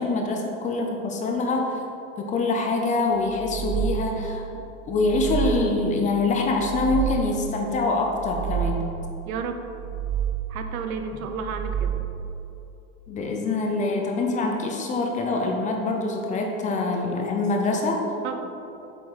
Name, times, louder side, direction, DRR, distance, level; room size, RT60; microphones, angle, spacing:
voice 1, 0.0-1.8 2.2-4.4 4.9-8.8 13.1-18.0, left 3 dB, 20° left, 2 dB, 0.6 m, -25 dB
sound 1, 3.2-4.3 4.8-5.9 6.4-7.5 8.0-9.1 9.6-10.7 11.2-12.3, right 10 dB, 35° right, 0.8 m, -29 dB
voice 2, 9.3-9.6 10.5-12.0 18.2-18.4, right 5 dB, 85° right, 6 dB, 0.9 m, -32 dB
7.7 x 4.9 x 5.6 m, 2.9 s
supercardioid pair, 150°, 41 cm